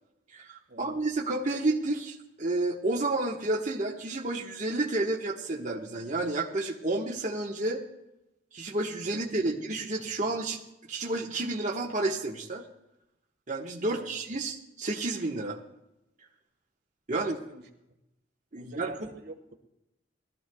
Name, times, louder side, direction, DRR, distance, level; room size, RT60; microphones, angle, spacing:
voice 1, 0.3-7.8 8.5-10.6 10.9-12.6 13.5-15.6 17.1-17.4 18.5-18.9, right 2 dB, 40° right, -3 dB, 1.3 m, -30 dB
voice 2, 17.5-18.0 18.5-19.5, right 2 dB, 60° right, 4 dB, 1.6 m, -47 dB
21.5 x 13.5 x 2.3 m, 0.87 s
head